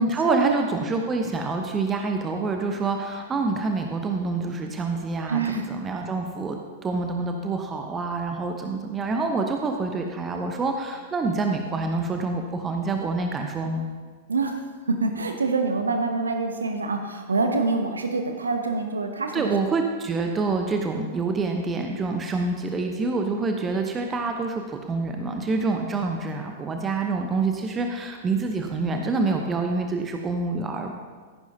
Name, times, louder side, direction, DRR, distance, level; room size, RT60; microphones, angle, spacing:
voice 1, 0.0-13.9 19.3-30.9, right 3 dB, 20° right, 4 dB, 0.9 m, -27 dB
voice 2, 5.3-5.7 14.3-14.6 14.9-19.4, right 4 dB, 75° right, 5 dB, 0.9 m, -25 dB
14.0 x 10.5 x 2.8 m, 1.5 s
figure-of-eight pair, 95°, 0 cm